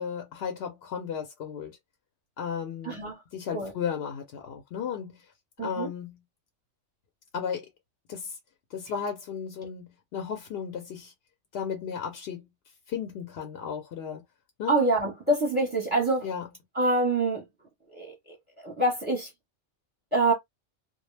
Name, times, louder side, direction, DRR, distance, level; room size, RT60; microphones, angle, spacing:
voice 1, 0.0-1.8 2.4-3.0 3.3-5.3 5.6-6.2 7.3-7.7 8.1-8.4 8.7-11.1 11.5-12.5 12.9-14.2 14.6-14.7 16.2-16.4, left 7 dB, 65° left, 0.7 m, -34 dB
voice 2, 2.8-3.2 3.5-3.7 5.6-5.9 14.7-16.3 16.7-17.4 17.9-18.1 18.6-19.3 20.1-20.3, right 2 dB, 10° right, 0.8 m, -25 dB
2.2 x 2.0 x 3.2 m
omnidirectional pair, 1.2 m